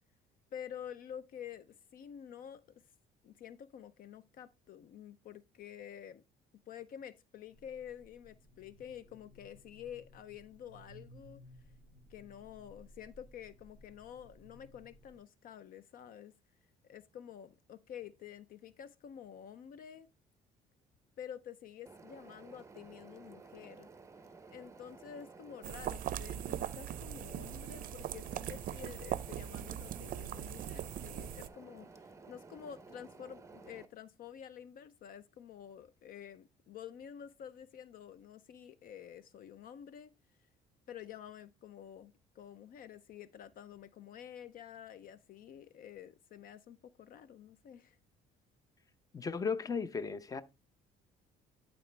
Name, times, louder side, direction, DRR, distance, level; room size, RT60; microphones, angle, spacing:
voice 1, 0.5-2.6 3.2-6.2 6.7-11.4 12.1-16.3 16.8-20.1 21.2-23.9 24.5-40.1 40.9-48.0, left 9 dB, 60° left, 0.5 m, -49 dB
sound 1, 7.5-15.2, equal, 40° left, 3.2 m, -59 dB
sound 2, 21.9-33.9, right 4 dB, 15° right, 0.6 m, -54 dB
sound 3, 25.6-31.5, right 11 dB, 55° right, 0.5 m, -40 dB
voice 2, 49.1-50.4, left 5 dB, 20° left, 0.6 m, -35 dB
11.5 x 4.2 x 3.3 m
cardioid pair, 110°, 17 cm